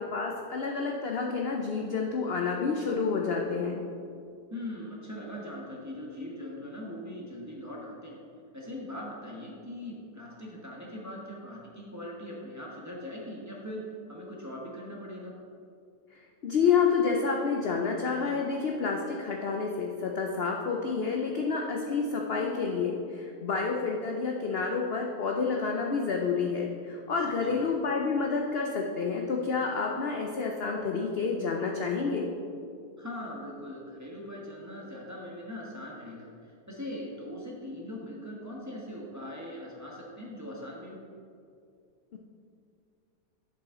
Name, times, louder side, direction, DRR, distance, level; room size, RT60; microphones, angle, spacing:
voice 1, 0.0-3.8 16.4-32.3 42.1-42.2, left 5 dB, 65° left, 1 dB, 0.6 m, -29 dB
voice 2, 4.5-8.2 8.5-15.3 27.3-27.6 33.0-41.0, left 1 dB, 10° right, -4 dB, 1.0 m, -41 dB
7.7 x 7.3 x 3.7 m, 2.4 s
omnidirectional pair, 1.7 m